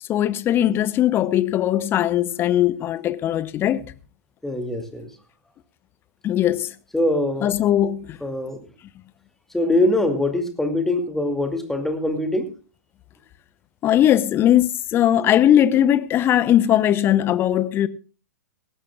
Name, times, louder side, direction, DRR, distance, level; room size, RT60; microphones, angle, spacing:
voice 1, 0.1-3.8 6.2-6.7 7.4-8.2 13.8-17.9, left 11 dB, 25° left, 0.8 m, -19 dB
voice 2, 4.4-5.1 6.9-7.5 8.2-8.6 9.5-12.5, left 1 dB, 5° left, 2.4 m, -23 dB
19.0 x 16.5 x 2.4 m
figure-of-eight pair, 105°, 9 cm